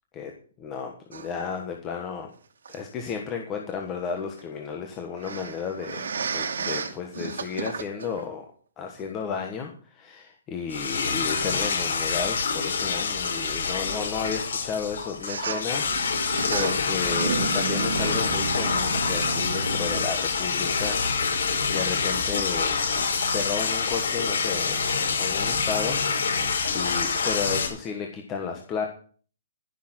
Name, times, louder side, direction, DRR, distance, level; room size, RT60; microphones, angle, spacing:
voice 1, 0.6-2.3 2.7-8.5 8.8-21.3 21.7-22.8 23.3-28.9, left 6 dB, 15° left, 2 dB, 1.4 m, -33 dB
sound 1, 1.1-1.3 2.7-2.8 5.2-8.2 9.0-9.1 11.9-12.0 15.2-20.1, right 5 dB, 80° right, 2.3 m, -32 dB
sound 2, 10.7-27.7, left 5 dB, 80° left, 5.7 m, -26 dB
14.5 x 6.7 x 7.9 m, 0.43 s
hypercardioid pair, 175°, 0 cm